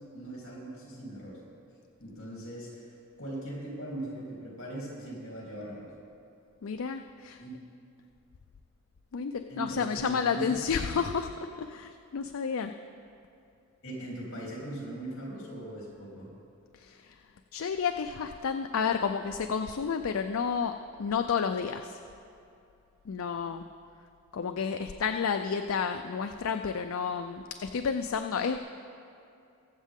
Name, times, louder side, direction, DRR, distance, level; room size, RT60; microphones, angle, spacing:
voice 1, 0.1-1.4 2.0-5.9 7.4-7.6 9.5-11.0 13.8-16.3, right 1 dB, 55° left, -4 dB, 3.4 m, -40 dB
voice 2, 6.6-7.4 9.1-12.8 16.7-17.2 17.5-22.0 23.1-23.7 24.3-28.6, left 6 dB, 70° left, 7 dB, 0.4 m, -31 dB
22.0 x 7.4 x 3.7 m, 2.6 s
head